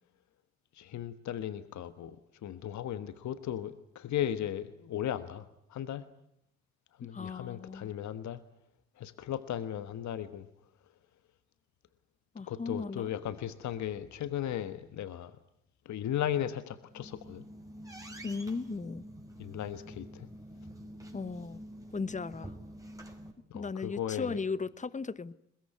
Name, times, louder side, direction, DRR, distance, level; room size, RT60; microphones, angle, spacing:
voice 1, 0.7-6.0 7.0-8.4 9.0-10.5 12.5-15.3 15.8-17.4 19.4-20.3 23.5-24.4, left 10 dB, 65° left, 1.4 m, -36 dB
voice 2, 7.1-7.9 12.3-13.1 18.2-19.0 21.1-21.6 21.9-22.5 23.5-25.3, left 4 dB, 25° left, 1.1 m, -36 dB
sound 1, 16.8-23.3, right 1 dB, 10° right, 5.9 m, -47 dB
22.5 x 21.0 x 9.7 m
hypercardioid pair, 45°, 31 cm